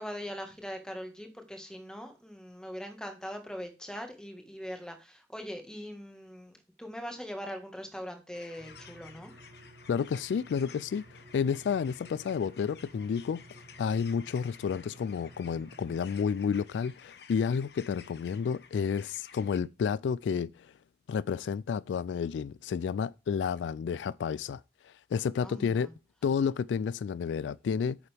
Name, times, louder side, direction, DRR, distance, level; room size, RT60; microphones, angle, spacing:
voice 1, 0.0-9.3 25.4-25.9, equal, 5° left, 1.6 m, -41 dB
sound 1, 8.3-19.6, left 6 dB, 65° left, 1.0 m, -54 dB
sound 2, 8.6-16.0, right 2 dB, 40° right, 1.3 m, -54 dB
voice 2, 9.9-13.4 13.8-20.5 21.1-25.9 26.2-28.0, left 6 dB, 85° left, 0.3 m, -31 dB
9.0 x 6.8 x 3.4 m
head